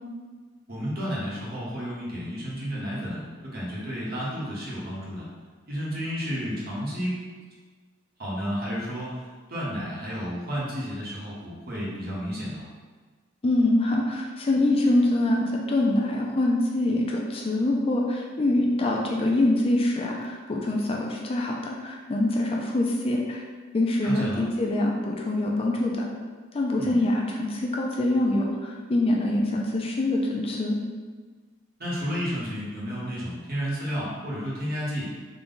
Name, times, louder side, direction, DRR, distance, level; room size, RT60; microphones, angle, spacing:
voice 1, 0.7-5.3 5.7-7.2 8.2-9.2 9.5-12.6 24.0-24.4 26.8-27.0 31.8-35.1, equal, 50° right, -6 dB, 1.1 m, -31 dB
voice 2, 13.4-23.4 23.7-26.1 26.5-30.8, left 1 dB, 30° left, -1 dB, 0.4 m, -24 dB
3.8 x 2.2 x 3.8 m, 1.4 s
head